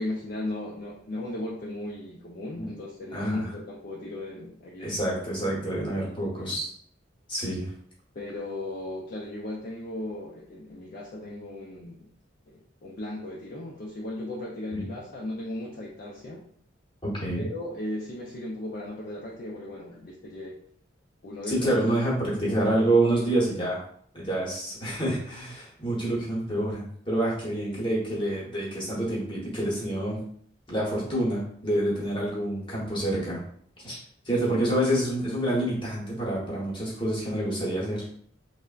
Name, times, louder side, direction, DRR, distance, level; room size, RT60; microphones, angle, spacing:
voice 1, 0.0-5.1 5.4-6.6 8.1-12.1 12.5-16.4 17.4-20.6 21.2-21.8 22.2-22.6 23.1-23.3 27.6-27.9 34.8-34.9, left 1 dB, 45° left, -4 dB, 0.4 m, -37 dB
voice 2, 3.1-3.5 4.8-6.7 7.3-7.7 14.7-14.8 17.0-17.4 21.5-23.8 24.1-30.2 30.7-33.4 33.8-34.0 34.2-38.0, right 1 dB, 25° left, -6 dB, 0.9 m, -27 dB
3.3 x 2.1 x 2.3 m, 0.62 s
head